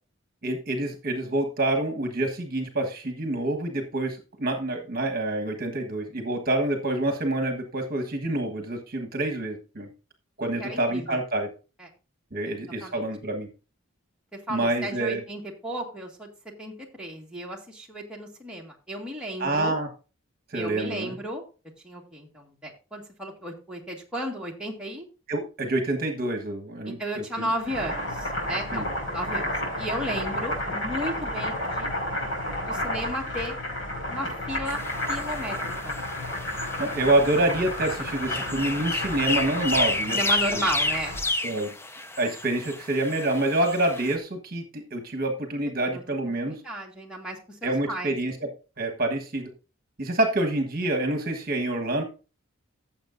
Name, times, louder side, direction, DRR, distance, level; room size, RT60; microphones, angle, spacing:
voice 1, 0.4-9.9 10.4-11.5 12.3-13.5 14.5-15.2 19.4-19.9 20.5-21.1 25.3-27.5 28.7-28.9 36.8-40.2 40.5-40.6 41.4-41.7 42.2-46.6 47.6-48.5 48.8-49.5 50.0-52.0, right 2 dB, 45° right, 4 dB, 1.4 m, -27 dB
voice 2, 10.6-11.2 11.8-11.9 12.5-13.0 14.5-16.3 16.6-19.8 20.5-21.4 21.8-25.1 26.9-31.9 32.6-33.6 34.1-34.8 35.1-35.6 35.8-36.0 39.9-41.2 45.9-46.0 46.5-48.2, equal, 5° right, -2 dB, 1.8 m, -34 dB
Boiling, 27.5-41.3, left 1 dB, 65° left, 5.2 m, -31 dB
sound 1, 34.7-44.2, left 2 dB, 10° left, 0.5 m, -31 dB
15.0 x 7.2 x 2.6 m, 0.33 s
head